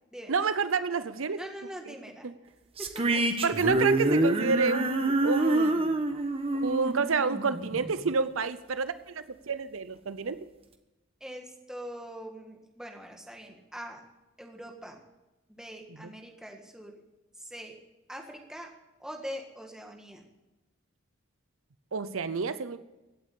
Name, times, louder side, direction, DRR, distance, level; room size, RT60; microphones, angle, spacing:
voice 1, 0.3-1.4 2.2-2.3 3.1-6.0 6.6-10.4 16.0-16.1 21.9-22.8, right 5 dB, 75° right, 13 dB, 0.7 m, -29 dB
voice 2, 1.4-2.3 2.8-3.2 11.2-14.0 14.4-15.0 15.5-17.0 17.4-17.8 18.1-18.7 19.0-20.2, equal, 5° right, 2 dB, 1.7 m, -43 dB
sound 1, 2.8-8.1, right 2 dB, 25° right, 1.1 m, -27 dB
16.5 x 8.5 x 8.5 m, 1.1 s
head